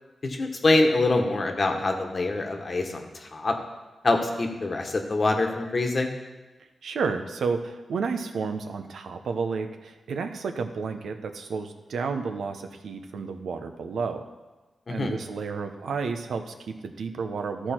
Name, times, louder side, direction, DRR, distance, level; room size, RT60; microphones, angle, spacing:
voice 1, 0.2-3.5 4.0-6.1 14.9-15.1, left 2 dB, 45° left, 3 dB, 1.2 m, -25 dB
voice 2, 6.8-14.2 14.9-17.7, right 5 dB, 85° right, 7 dB, 0.7 m, -31 dB
13.0 x 4.6 x 4.4 m, 1.2 s
cardioid pair, 75°, 0 cm